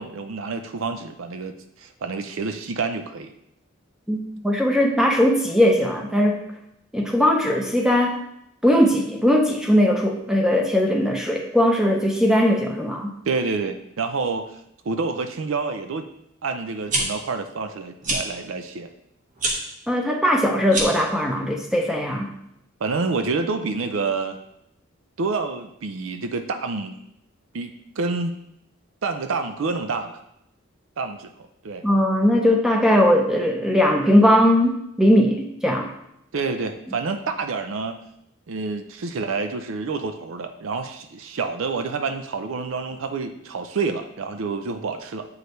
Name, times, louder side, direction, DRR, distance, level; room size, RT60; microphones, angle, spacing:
voice 1, 0.0-3.3 13.3-14.5 14.8-16.1 16.4-18.9 22.8-24.4 25.2-27.0 27.5-28.3 29.0-30.2 31.0-31.3 31.6-31.8 36.3-38.0 38.5-45.3, right 4 dB, 70° right, 7 dB, 0.5 m, -28 dB
voice 2, 4.1-6.4 6.9-8.2 8.6-13.2 19.9-22.3 31.8-35.9, equal, 5° right, 2 dB, 0.6 m, -19 dB
sound 1, 16.9-17.0 18.0-18.2 19.4-19.6 20.6-21.0, right 2 dB, 35° right, 1.2 m, -24 dB
7.9 x 4.8 x 3.2 m, 0.77 s
head